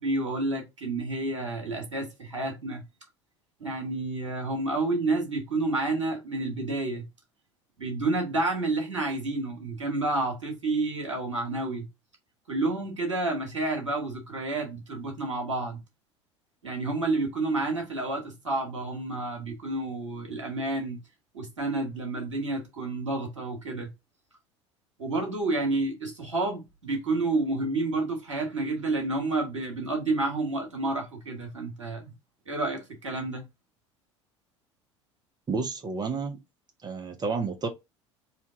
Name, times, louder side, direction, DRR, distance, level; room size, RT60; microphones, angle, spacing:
voice 1, 0.0-2.8 3.6-7.0 7.8-11.9 12.5-15.8 16.6-21.0 21.3-23.9 25.0-32.1 32.5-33.4, right 2 dB, 85° right, 1.7 m, -30 dB
voice 2, 35.5-36.4 36.8-37.7, right 4 dB, 25° right, 1.2 m, -30 dB
4.5 x 2.8 x 3.7 m
figure-of-eight pair, 70°, 15 cm